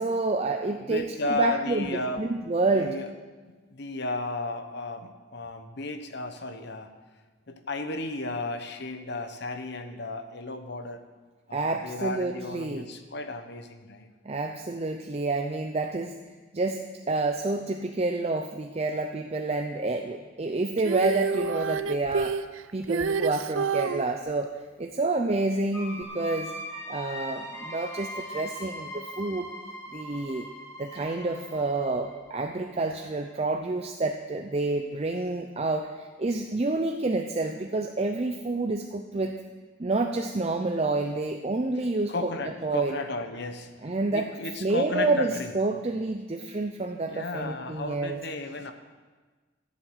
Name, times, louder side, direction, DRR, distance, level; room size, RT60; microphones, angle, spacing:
voice 1, 0.0-1.9 2.2-2.9 11.5-12.9 14.2-16.2 16.5-22.4 22.7-24.5 24.8-26.5 26.9-29.5 29.9-30.5 30.8-39.4 39.8-42.3 42.6-43.0 43.8-44.3 44.6-48.2, right 2 dB, 30° right, 4 dB, 0.6 m, -28 dB
voice 2, 0.8-2.3 2.7-3.1 3.4-6.9 7.5-11.0 11.5-14.1 42.1-45.5 47.0-48.7, left 2 dB, 55° left, 7 dB, 1.1 m, -34 dB
Female singing, 20.8-24.1 26.0-26.1, right 5 dB, 90° right, 0.5 m, -28 dB
sound 1, 25.7-33.3, equal, 15° left, 2.0 m, -40 dB
13.5 x 7.6 x 7.9 m, 1.3 s
head